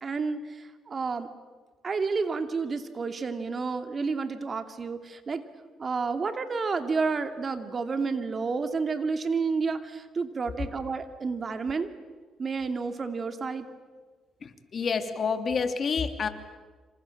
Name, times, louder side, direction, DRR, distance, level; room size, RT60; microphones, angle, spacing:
voice 1, 0.0-1.3 1.8-5.4 5.8-11.9 12.4-13.7, right 4 dB, 40° right, 8 dB, 2.7 m, -30 dB
voice 2, 14.4-16.3, left 5 dB, 50° left, 7 dB, 2.9 m, -28 dB
27.0 x 26.5 x 7.6 m, 1.4 s
cardioid pair, 80°, 0 cm